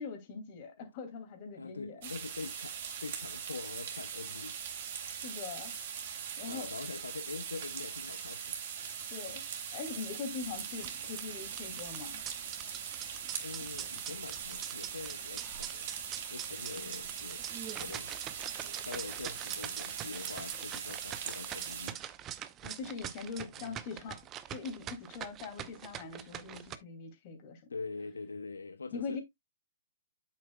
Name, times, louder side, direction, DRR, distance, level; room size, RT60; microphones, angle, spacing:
voice 1, 0.0-2.1 5.2-5.7 6.4-6.7 9.1-12.2 16.8-17.0 22.6-24.2 24.5-27.6 28.9-29.2, left 5 dB, 40° left, 2.5 m, -42 dB
voice 2, 1.5-5.1 6.2-8.6 13.4-15.9 16.3-17.4 17.8-18.1 18.5-18.6 18.8-22.0 23.6-23.8 27.7-29.2, left 4 dB, 85° left, 0.7 m, -44 dB
sound 1, 2.0-21.9, right 8 dB, 50° right, 3.0 m, -41 dB
sound 2, 10.7-26.7, right 11 dB, 25° right, 0.7 m, -44 dB
8.5 x 7.3 x 2.3 m
hypercardioid pair, 130°, 0 cm